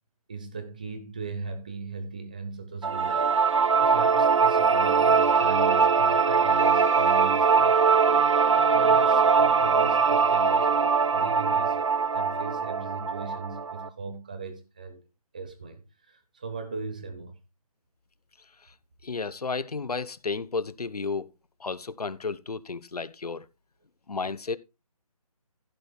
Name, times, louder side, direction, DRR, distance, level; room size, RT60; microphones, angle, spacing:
voice 1, 0.3-15.0 15.3-17.3, right 4 dB, 15° right, 0.9 m, -38 dB
sound 1, 2.8-13.9, right 5 dB, 55° right, 0.9 m, -22 dB
voice 2, 19.0-21.3 21.6-23.5 24.1-24.6, left 4 dB, 85° left, 1.1 m, -32 dB
15.0 x 5.6 x 4.6 m
hypercardioid pair, 180°, 19 cm